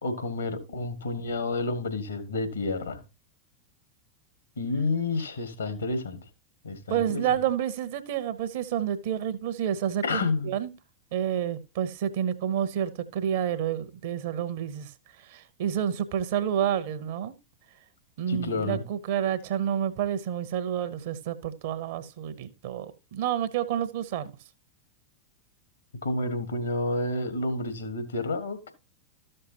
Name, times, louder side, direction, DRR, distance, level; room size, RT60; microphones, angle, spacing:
voice 1, 0.0-3.0 4.6-6.2 6.6-7.2 10.0-10.5 18.3-18.8 26.0-28.7, left 2 dB, 75° left, 1.7 m, -30 dB
voice 2, 6.9-10.7 11.1-14.9 15.2-17.3 18.2-24.3, right 9 dB, 55° right, 0.9 m, -29 dB
13.0 x 6.6 x 2.9 m
figure-of-eight pair, 90°, 0 cm